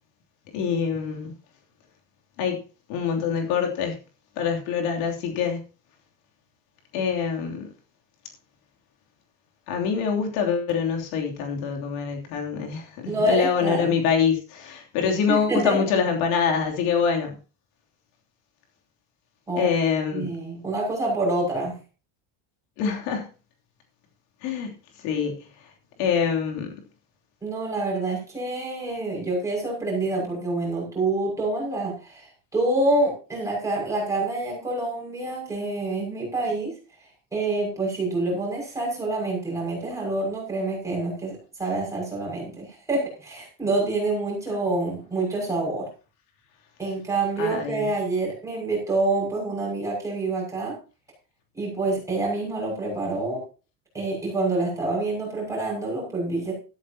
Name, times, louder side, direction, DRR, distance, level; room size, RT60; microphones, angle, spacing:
voice 1, 0.5-1.3 2.4-2.6 2.9-3.9 4.4-5.6 6.9-7.7 9.7-17.4 19.6-20.3 22.8-23.3 24.4-24.7 25.0-25.3 26.0-26.7 47.4-47.9, left 6 dB, 70° left, 3.2 m, -25 dB
voice 2, 13.1-13.9 15.3-15.8 19.5-19.7 20.1-21.8 27.4-36.7 37.0-45.9 46.8-50.8 51.5-53.4 53.9-56.5, right 2 dB, 5° right, 6.4 m, -27 dB
13.5 x 13.0 x 2.9 m
cardioid pair, 175°, 43 cm